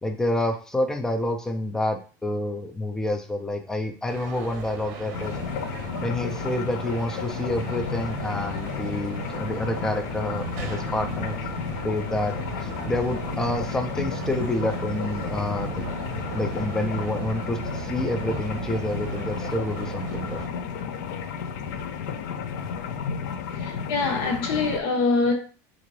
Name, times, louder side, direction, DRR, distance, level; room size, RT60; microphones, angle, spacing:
voice 1, 0.0-5.3 6.0-11.4 11.8-15.8 16.3-20.4, left 1 dB, 5° left, 0.4 m, -28 dB
sound 1, 4.1-20.5, right 6 dB, 55° right, 0.8 m, -37 dB
sound 2, 5.1-24.8, left 6 dB, 80° left, 0.4 m, -33 dB
voice 2, 23.3-25.3, left 3 dB, 55° left, 1.1 m, -25 dB
3.7 x 2.5 x 3.1 m
supercardioid pair, 160°, 9 cm